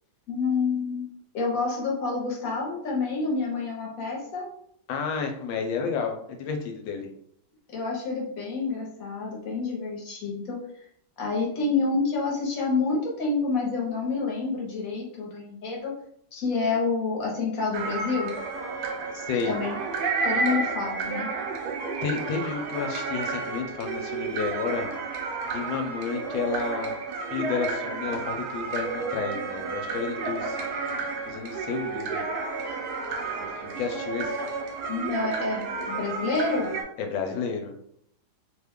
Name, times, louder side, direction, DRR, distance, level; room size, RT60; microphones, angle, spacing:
voice 1, 0.3-1.1 1.3-4.5 7.7-10.6 11.2-15.9 16.3-18.3 19.5-19.8 20.2-21.3 34.9-36.8, left 4 dB, 55° left, -3 dB, 1.2 m, -28 dB
voice 2, 4.9-7.1 19.1-19.5 22.0-24.9 25.5-27.0 27.3-30.7 31.3-32.2 33.3-34.4 37.0-37.9, left 5 dB, 85° left, 4 dB, 1.3 m, -31 dB
sound 1, 17.7-36.8, right 4 dB, 75° right, 1.2 m, -31 dB
3.1 x 2.2 x 3.5 m, 0.69 s
omnidirectional pair, 2.0 m